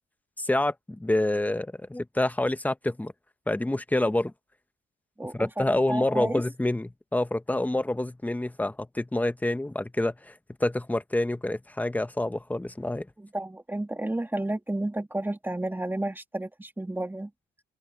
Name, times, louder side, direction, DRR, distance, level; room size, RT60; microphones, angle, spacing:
voice 1, 0.4-3.1 3.5-4.3 5.3-13.1, left 1 dB, 10° left, 1.1 m, -27 dB
voice 2, 5.2-6.4 13.2-17.3, right 1 dB, 10° right, 2.5 m, -31 dB
open air
cardioid pair, 90°, 20 cm